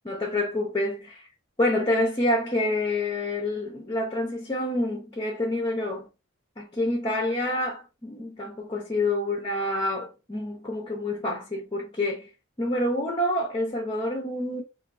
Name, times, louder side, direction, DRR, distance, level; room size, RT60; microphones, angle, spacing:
voice 1, 0.1-1.3 1.6-6.1 6.6-12.3 12.6-14.6, left 1 dB, 25° left, 0.7 m, -27 dB
4.3 x 2.6 x 2.5 m
head